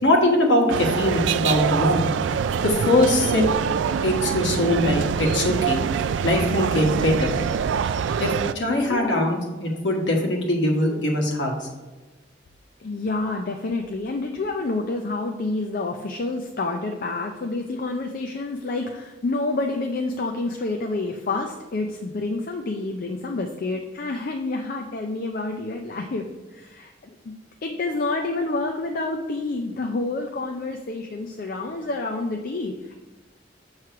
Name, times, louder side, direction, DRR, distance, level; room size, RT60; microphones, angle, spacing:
voice 1, 0.0-2.0 2.6-3.4 4.0-5.8 6.2-7.3 8.2-11.5, left 1 dB, 75° left, 0 dB, 1.4 m, -21 dB
sound 1, 0.7-8.5, right 7 dB, 90° right, 0.3 m, -24 dB
voice 2, 8.7-9.3 12.8-27.3 27.6-33.0, left 2 dB, 50° left, 3 dB, 0.5 m, -28 dB
7.4 x 3.2 x 5.7 m, 1.2 s
head